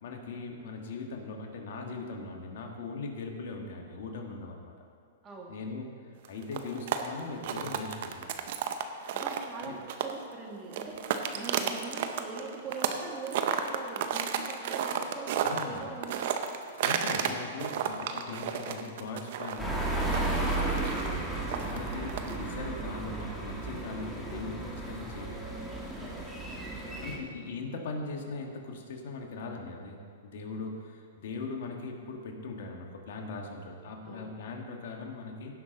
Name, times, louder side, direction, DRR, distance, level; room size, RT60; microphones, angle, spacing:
voice 1, 0.0-4.7 5.5-8.4 9.6-9.7 15.4-15.8 16.8-20.2 20.6-20.8 21.6-26.2 27.0-35.6, left 3 dB, 65° left, 2 dB, 1.6 m, -40 dB
voice 2, 5.2-5.6 9.1-11.0 11.3-16.2 20.4-21.2 26.6-27.3 34.1-34.3, right 5 dB, 25° right, -1 dB, 1.9 m, -42 dB
sound 1, 6.2-10.3 10.7-13.0 13.3-17.3 17.6-22.4, right 8 dB, 60° right, 0.7 m, -32 dB
sound 2, 19.6-27.2, right 2 dB, ahead, 1.7 m, -34 dB
16.5 x 5.9 x 3.9 m, 2.3 s
hypercardioid pair, 125°, 0 cm